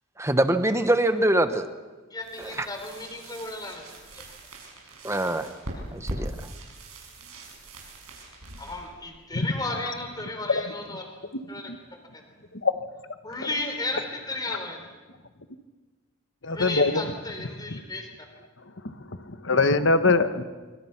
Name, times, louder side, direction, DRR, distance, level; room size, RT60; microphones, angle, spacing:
voice 1, 0.2-1.7 5.0-5.5 5.9-6.3, right 1 dB, 15° right, 9 dB, 1.1 m, -23 dB
voice 2, 2.1-3.8 4.1-4.3 5.7-5.8 8.4-11.0 11.5-11.7 12.1-12.2 13.2-14.9 16.5-18.3, left 2 dB, 20° left, 4 dB, 3.6 m, -34 dB
sound 1, 2.2-10.0, right 1 dB, 85° right, 6.5 m, -41 dB
voice 3, 16.4-17.0 18.8-20.4, left 3 dB, 55° left, 10 dB, 1.3 m, -23 dB
25.5 x 24.5 x 5.9 m, 1.3 s
head